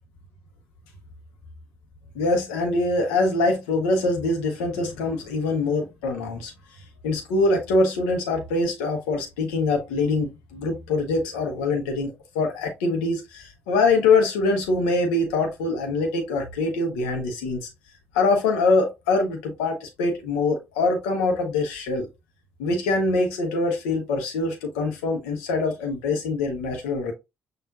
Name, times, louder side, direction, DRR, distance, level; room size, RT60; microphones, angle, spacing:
voice 1, 2.1-6.5 7.0-17.7 18.1-22.1 22.6-27.1, left 3 dB, 80° left, 0.9 m, -24 dB
6.2 x 2.5 x 2.4 m
hypercardioid pair, 45°, 7 cm